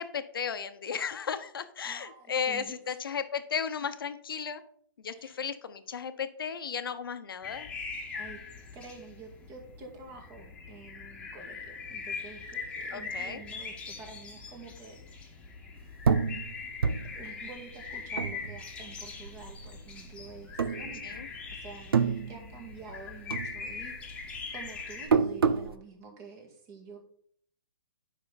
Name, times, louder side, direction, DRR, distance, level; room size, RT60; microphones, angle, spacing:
voice 1, 0.0-4.6 5.0-7.7 12.9-13.4 21.0-21.3, left 7 dB, 70° left, 10 dB, 1.0 m, -35 dB
voice 2, 1.8-3.0 5.1-5.4 8.1-8.4 8.7-15.4 17.1-27.0, right 4 dB, 25° right, 2 dB, 2.2 m, -48 dB
sound 1, 7.4-25.1, left 4 dB, 10° left, 1.6 m, -41 dB
sound 2, 16.0-18.9 19.2-20.1 20.5-21.4 21.7-23.0 23.3-25.7, right 6 dB, 85° right, 0.8 m, -28 dB
11.0 x 5.6 x 4.1 m, 0.62 s
hypercardioid pair, 145°, 12 cm